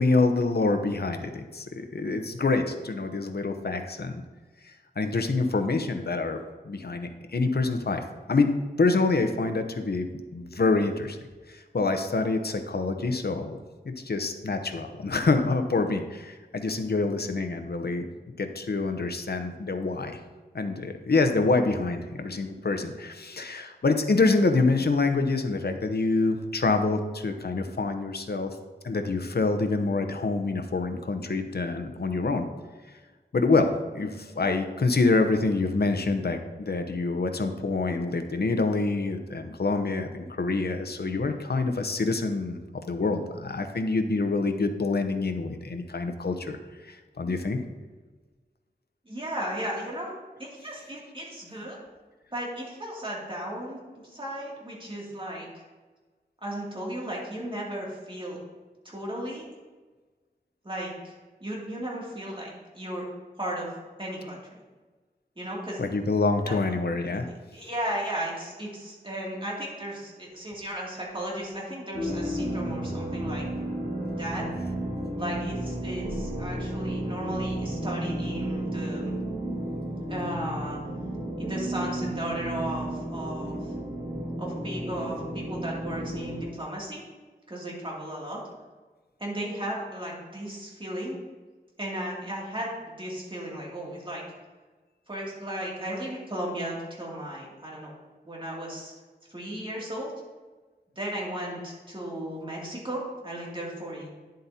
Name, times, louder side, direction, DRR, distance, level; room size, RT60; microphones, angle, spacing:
voice 1, 0.0-4.2 4.6-6.4 6.6-8.0 8.3-8.5 8.8-10.1 10.3-11.2 11.5-13.6 13.8-18.1 18.4-20.2 20.5-28.6 28.8-32.4 33.3-46.6 46.8-47.6 65.8-67.3, left 3 dB, 65° left, 6 dB, 0.8 m, -26 dB
voice 2, 49.1-50.1 50.4-51.8 52.3-55.6 56.4-58.4 58.8-59.5 60.6-61.1 61.4-63.1 63.4-63.7 64.0-64.4 65.4-65.8 66.4-66.6 67.2-73.5 74.0-74.4 75.2-79.1 80.1-80.8 81.4-83.7 84.4-87.0 87.5-88.4 89.2-91.2 91.8-94.2 95.1-97.9 98.2-98.9 99.3-100.1 101.0-104.1, right 1 dB, 30° right, -4 dB, 2.5 m, -35 dB
sound 1, 71.9-86.4, right 1 dB, 85° right, 2.2 m, -32 dB
10.5 x 7.7 x 2.8 m, 1.3 s
wide cardioid pair, 70°, 18 cm